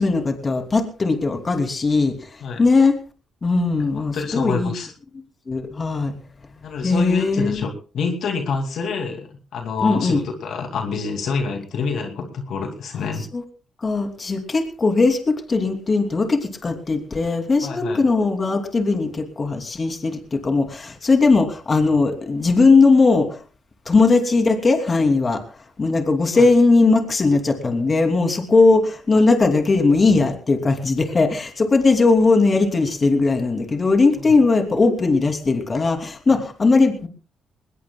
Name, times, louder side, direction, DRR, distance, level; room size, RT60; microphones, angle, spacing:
voice 1, 0.0-2.1 2.6-3.0 3.4-4.7 5.5-6.1 6.8-7.6 9.8-10.2 13.3-13.4 13.8-23.4 23.9-25.4 25.8-37.1, left 3 dB, 35° left, 5 dB, 2.9 m, -18 dB
voice 2, 3.9-4.9 6.6-13.3 17.6-18.0 26.3-26.4, left 5 dB, 65° left, 4 dB, 2.4 m, -27 dB
21.5 x 19.5 x 2.3 m, 0.36 s
cardioid pair, 90°, 0 cm